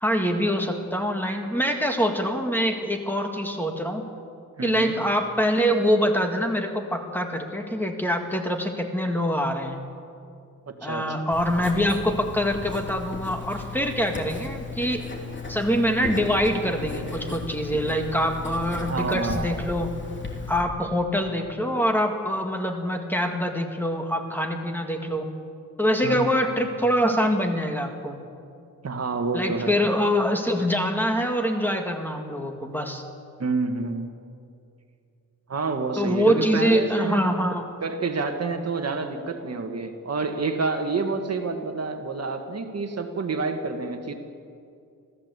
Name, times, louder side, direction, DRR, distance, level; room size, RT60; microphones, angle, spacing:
voice 1, 0.0-4.0 4.6-9.8 10.8-15.0 15.5-19.9 20.5-25.3 25.8-28.2 29.3-33.0 36.0-37.7, equal, 5° left, 3 dB, 1.9 m, -24 dB
voice 2, 4.6-4.9 10.7-11.3 18.9-19.5 26.0-26.6 28.8-29.8 33.4-34.1 35.5-37.3 37.8-44.1, right 4 dB, 50° right, 5 dB, 1.8 m, -28 dB
Writing, 11.3-20.6, left 4 dB, 35° left, 3.2 m, -35 dB
27.0 x 15.5 x 8.2 m, 2.5 s
wide cardioid pair, 145°, 33 cm